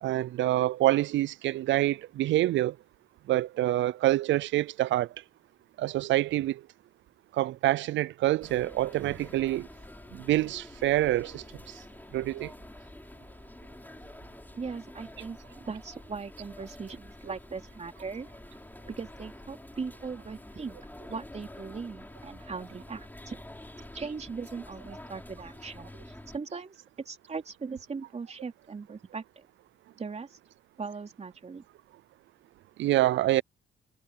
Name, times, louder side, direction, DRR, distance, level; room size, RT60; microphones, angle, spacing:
voice 1, 0.0-2.8 3.3-5.1 5.8-6.6 7.3-9.7 10.1-11.4 12.1-12.5 32.8-33.4, right 15 dB, 70° right, 0.5 m, -26 dB
sound 1, 8.4-26.4, left 1 dB, 10° left, 5.6 m, -48 dB
voice 2, 14.5-18.3 19.0-20.8 21.1-23.4 23.9-29.5 30.0-30.4 30.8-31.6, right 5 dB, 35° right, 3.2 m, -39 dB
cardioid pair, 90°, 20 cm